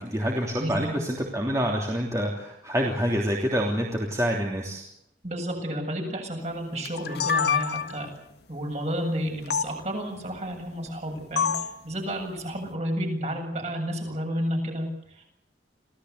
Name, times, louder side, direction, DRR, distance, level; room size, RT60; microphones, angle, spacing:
voice 1, 0.0-4.8, equal, 20° right, -1 dB, 3.1 m, -27 dB
voice 2, 0.6-0.9 5.2-8.1 8.5-14.9 15.2-15.3, equal, 40° right, 3 dB, 7.6 m, -31 dB
sound 1, 6.8-8.1 9.5-9.7 11.4-11.8, left 7 dB, 65° left, 1.6 m, -26 dB
26.0 x 17.5 x 8.1 m, 0.77 s
head